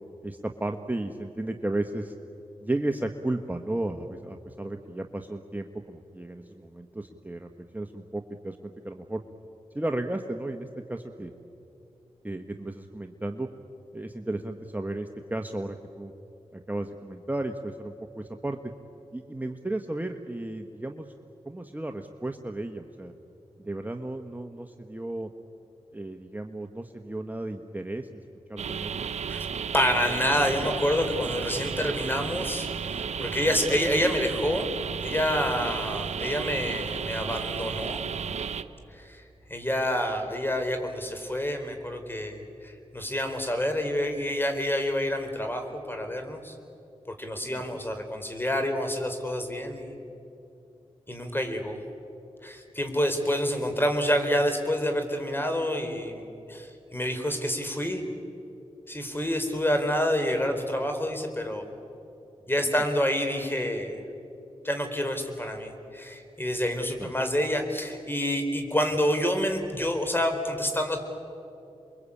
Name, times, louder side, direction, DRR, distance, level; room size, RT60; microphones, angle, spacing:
voice 1, 0.2-2.1 2.6-9.2 9.7-11.3 12.2-13.5 13.9-16.1 16.5-18.6 19.1-21.1 21.4-23.1 23.6-25.3 25.9-28.2 28.5-29.0 33.7-33.8 47.5-47.6 62.7-62.8 67.0-67.1, right 2 dB, 15° right, 5 dB, 1.4 m, -34 dB
sound 1, 28.6-38.6, right 6 dB, 75° right, 0.8 m, -33 dB
voice 2, 29.7-34.7 35.0-38.0 38.9-39.2 39.5-46.5 47.2-49.9 51.1-51.8 52.4-58.0 58.9-61.7 62.5-64.0 64.6-71.1, equal, 20° left, 6 dB, 4.4 m, -28 dB
28.0 x 22.5 x 8.7 m, 2.8 s
cardioid pair, 40°, 12 cm